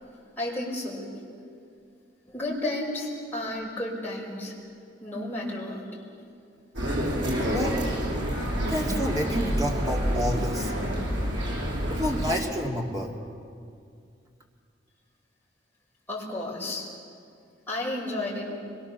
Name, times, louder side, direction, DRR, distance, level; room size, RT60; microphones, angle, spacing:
voice 1, 0.4-1.2 2.3-4.6 5.0-5.8 16.1-16.9 17.7-18.6, left 1 dB, 10° left, -5 dB, 5.3 m, -32 dB
sound 1, 6.8-12.4, equal, 75° right, 7.0 m, -28 dB
voice 2, 7.5-7.8 8.7-10.7 11.9-13.1, equal, 20° right, 0 dB, 2.5 m, -29 dB
25.0 x 23.0 x 7.0 m, 2.3 s
head